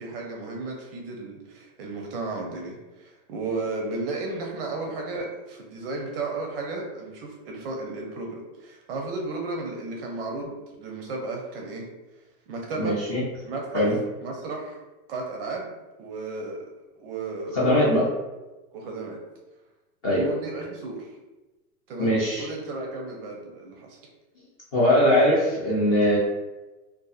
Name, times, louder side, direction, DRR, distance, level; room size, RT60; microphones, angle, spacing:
voice 1, 0.0-11.9 12.5-13.0 13.4-13.9 14.2-14.8 15.1-15.7 16.0-16.7 16.9-17.6 18.7-19.2 20.1-21.1 21.9-24.0, right 3 dB, 40° right, 1 dB, 0.4 m, -34 dB
voice 2, 12.8-13.2 13.7-14.0 17.5-18.1 20.0-20.3 22.0-22.5 24.7-26.2, left 1 dB, 25° left, -6 dB, 0.4 m, -21 dB
2.6 x 2.4 x 2.3 m, 1.1 s
hypercardioid pair, 135°, 47 cm